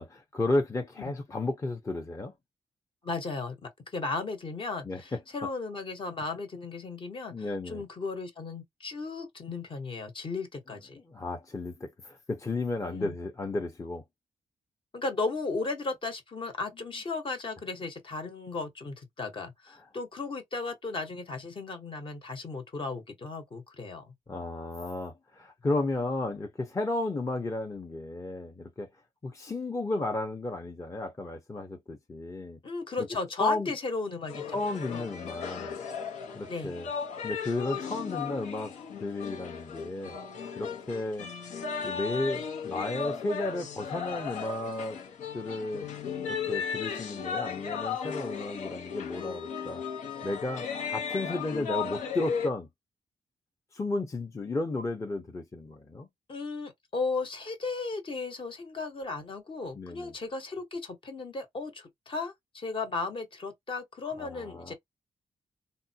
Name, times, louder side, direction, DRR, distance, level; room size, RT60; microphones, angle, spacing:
voice 1, 0.0-2.3 4.8-5.0 7.3-7.8 11.1-14.0 24.3-28.9 29.2-32.6 33.0-33.1 33.4-33.7 34.5-35.8 36.3-36.9 37.2-38.7 39.0-40.2 40.6-41.3 41.8-45.0 45.3-45.9 46.3-49.8 50.2-52.7 53.7-56.1 59.7-60.1 64.2-64.7, left 2 dB, 25° left, 0.7 m, -33 dB
voice 2, 3.0-11.0 12.8-13.1 14.9-24.1 32.6-34.6 34.9-35.0 36.5-36.7 56.3-64.7, left 3 dB, 45° left, 1.0 m, -35 dB
sound 1, 34.3-52.5, left 6 dB, 90° left, 0.8 m, -36 dB
3.5 x 2.2 x 2.7 m
cardioid pair, 90°, 12 cm